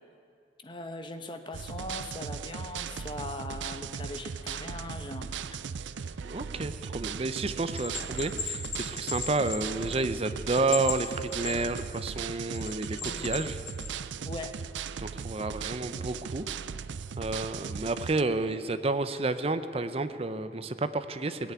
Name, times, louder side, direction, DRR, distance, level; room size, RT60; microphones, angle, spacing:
voice 1, 0.6-5.6 5.9-6.0 13.0-13.3 14.2-14.5, left 2 dB, 25° left, 7 dB, 1.0 m, -40 dB
sound 1, 1.5-18.2, right 6 dB, 85° right, 0.5 m, -38 dB
voice 2, 6.2-13.6 15.0-16.4 17.2-21.5, right 3 dB, 35° right, 12 dB, 0.6 m, -30 dB
Bell, 7.8-10.2 10.5-12.0 12.5-13.9, left 5 dB, 90° left, 3.1 m, -36 dB
18.5 x 8.3 x 9.3 m, 2.4 s
head